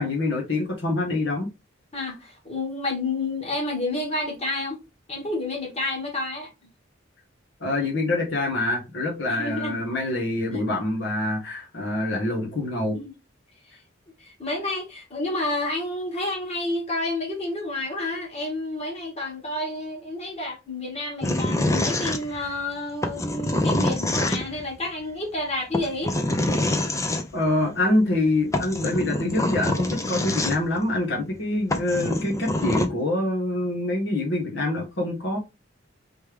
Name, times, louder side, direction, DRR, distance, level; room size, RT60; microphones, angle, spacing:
voice 1, 0.0-1.5 7.6-13.0 27.3-35.4, left 2 dB, 70° left, 1.4 m, -25 dB
voice 2, 1.9-4.8 5.1-6.5 9.3-9.8 10.5-10.6 12.9-13.1 13.7-13.8 14.2-26.1, left 2 dB, 35° left, 1.9 m, -30 dB
sound 1, 21.2-22.6 23.0-24.7 25.7-27.2 28.2-28.3 28.5-30.8 31.4-31.5 31.7-32.9, left 1 dB, 15° left, 0.6 m, -25 dB
4.3 x 3.4 x 3.4 m
head